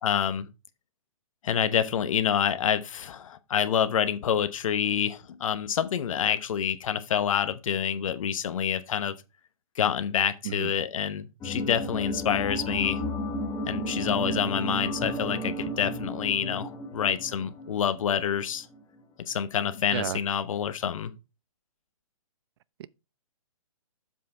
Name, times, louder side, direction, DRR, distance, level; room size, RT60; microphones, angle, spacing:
voice 1, 0.0-0.5 1.4-9.1 9.8-13.0 13.7-18.7 19.3-21.1, left 8 dB, 65° left, 1.0 m, -27 dB
voice 2, 10.4-10.7 19.9-20.2 22.8-22.9, right 12 dB, 45° right, 0.5 m, -32 dB
sound 1, 11.4-18.4 18.7-18.8, equal, 15° left, 1.5 m, -33 dB
7.5 x 5.6 x 4.3 m
hypercardioid pair, 145°, 18 cm